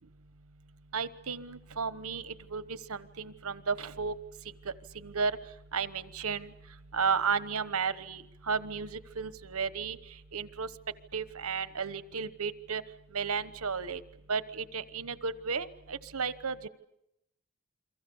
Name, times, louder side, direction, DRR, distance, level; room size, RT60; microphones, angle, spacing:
voice 1, 0.9-4.1 4.9-5.3 5.7-6.5 6.9-10.0 10.3-10.7 11.1-12.8 13.1-14.0 14.3-16.7, right 5 dB, 85° right, 14 dB, 1.2 m, -33 dB
29.0 x 23.5 x 7.1 m, 0.80 s
head